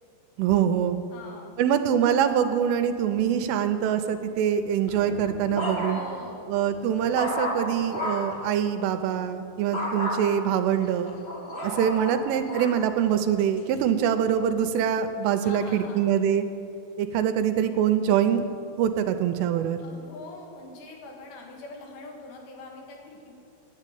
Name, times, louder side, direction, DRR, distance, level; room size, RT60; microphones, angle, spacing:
voice 1, 0.4-1.0 1.6-6.0 6.5-11.1 11.6-16.5 17.0-18.4 18.8-19.8, right 9 dB, 85° right, 9 dB, 3.2 m, -24 dB
voice 2, 1.1-1.6 5.8-6.6 15.4-16.1 19.8-23.3, left 3 dB, 75° left, 0 dB, 4.1 m, -43 dB
sound 1, 4.9-6.2 6.7-8.4 9.7-10.2 10.8-12.8 13.4-13.8, equal, 30° left, 1.1 m, -32 dB
10.5 x 9.6 x 9.2 m, 2.7 s
omnidirectional pair, 5.7 m